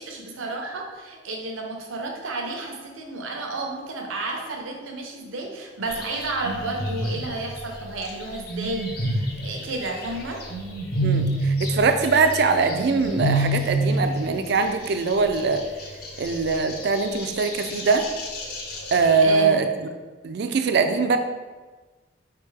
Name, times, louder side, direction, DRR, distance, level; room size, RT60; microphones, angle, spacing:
voice 1, 0.0-10.4 19.2-19.5, right 2 dB, 85° right, 2 dB, 0.7 m, -32 dB
sound 1, 5.9-7.4 8.3-10.1 10.4-13.9 14.2-14.3 14.8-19.2, right 1 dB, 50° left, 0.7 m, -28 dB
voice 2, 11.0-15.6 16.2-18.1 18.9-19.7 20.2-21.2, right 4 dB, 55° right, 7 dB, 0.3 m, -22 dB
4.9 x 3.4 x 3.2 m, 1.3 s
head